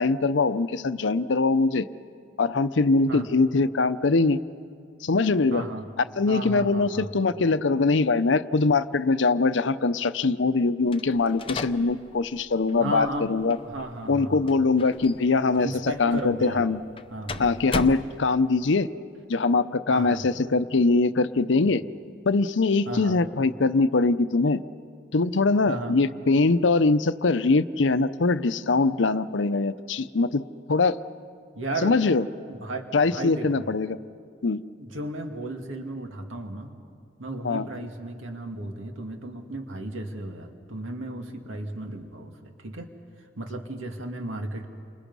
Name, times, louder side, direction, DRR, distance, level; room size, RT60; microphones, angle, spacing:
voice 1, 0.0-1.9 2.4-4.4 5.0-5.6 6.2-13.6 14.1-15.7 16.0-16.8 17.4-18.9 19.3-21.8 22.3-24.6 25.1-30.4 30.7-31.0 31.8-32.2 32.9-34.0 34.4-34.6 37.4-37.7, left 3 dB, 70° left, 13 dB, 0.6 m, -22 dB
voice 2, 5.5-5.9 6.3-7.1 12.8-13.3 13.6-14.6 15.6-16.7 17.1-17.5 19.9-20.2 22.9-23.2 25.7-26.0 31.5-31.9 32.5-33.7 34.8-36.7 37.2-42.9 43.2-44.7, right 1 dB, 90° right, 4 dB, 2.1 m, -34 dB
sound 1, 10.9-18.7, left 3 dB, 25° left, 0.6 m, -38 dB
29.5 x 26.5 x 5.4 m, 2.2 s
head